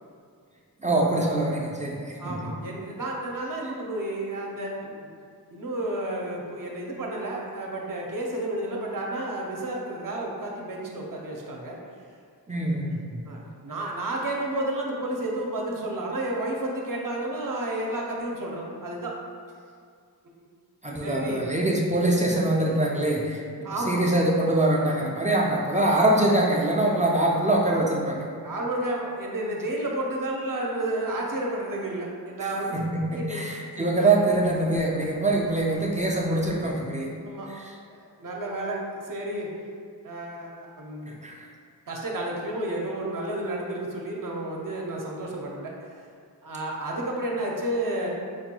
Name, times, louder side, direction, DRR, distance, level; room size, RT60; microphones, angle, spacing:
voice 1, 0.8-2.5 12.5-13.2 20.8-28.3 32.7-33.0 33.3-37.1 37.5-37.7 41.1-41.5, right 1 dB, 20° right, -3 dB, 0.3 m, -24 dB
voice 2, 2.2-4.9 5.5-11.8 13.3-19.1 21.0-21.4 23.6-24.0 28.4-32.8 33.1-33.4 37.2-37.5 37.9-39.5 40.0-41.1 41.9-45.7 46.4-48.1, right 1 dB, 55° right, -2 dB, 0.6 m, -31 dB
4.6 x 2.2 x 2.8 m, 2.2 s
wide cardioid pair, 75°, 40 cm